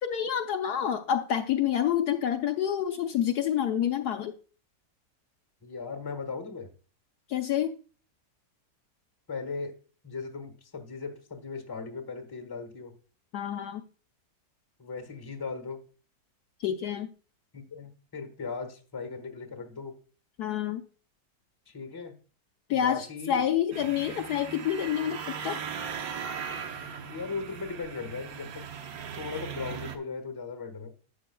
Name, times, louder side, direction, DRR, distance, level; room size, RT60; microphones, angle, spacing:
voice 1, 0.0-4.3 7.3-7.7 13.3-13.8 16.6-17.1 20.4-20.8 22.7-25.6, left 9 dB, 70° left, 5 dB, 1.1 m, -28 dB
voice 2, 5.6-6.7 9.3-9.7 10.0-12.9 14.8-15.8 17.5-20.0 21.7-22.1 22.7-23.4 26.9-28.7 29.2-30.9, left 4 dB, 15° left, 6 dB, 1.1 m, -38 dB
sound 1, 23.7-30.0, right 7 dB, 60° right, 1.3 m, -38 dB
12.5 x 8.3 x 2.3 m, 0.38 s
omnidirectional pair, 1.9 m